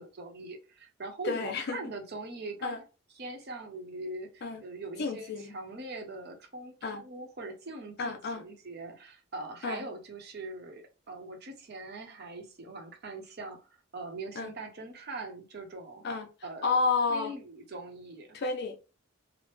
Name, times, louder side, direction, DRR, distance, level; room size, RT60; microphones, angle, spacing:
voice 1, 0.0-2.8 3.2-6.7 7.0-13.6 13.9-16.0 16.4-16.8 17.1-18.4, right 2 dB, 55° right, 0.8 m, -42 dB
voice 2, 1.2-1.8 2.6-2.8 4.4-4.6 5.0-5.6 6.8-7.0 8.0-8.4 9.6-9.8 14.4-14.5 16.0-16.3 16.6-17.3 18.3-18.8, left 4 dB, 50° left, 0.4 m, -30 dB
3.0 x 2.0 x 3.2 m
head